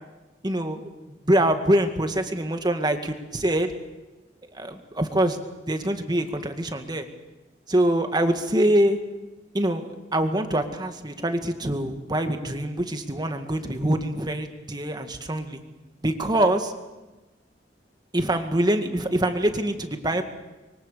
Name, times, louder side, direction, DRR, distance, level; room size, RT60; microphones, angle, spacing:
voice 1, 0.4-3.7 4.5-5.4 5.7-7.1 7.7-9.0 9.5-15.6 16.0-16.7 18.1-20.2, right 1 dB, 25° right, 6 dB, 2.0 m, -24 dB
25.5 x 23.0 x 6.9 m, 1.1 s
head